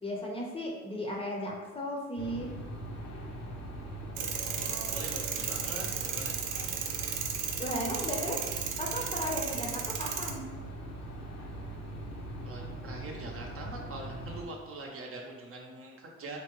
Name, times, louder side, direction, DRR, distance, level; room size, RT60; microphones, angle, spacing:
voice 1, 0.0-2.5 7.6-8.4 8.8-10.4, equal, 20° left, -2 dB, 0.6 m, -35 dB
sound 1, 2.2-14.5, right 1 dB, 60° left, 0.6 m, -41 dB
sound 2, 4.2-10.3, right 7 dB, 85° right, 0.5 m, -35 dB
voice 2, 4.4-6.3 12.4-16.4, right 2 dB, 45° right, 0 dB, 0.6 m, -43 dB
3.5 x 2.1 x 2.9 m, 1.3 s
cardioid pair, 90°, 30 cm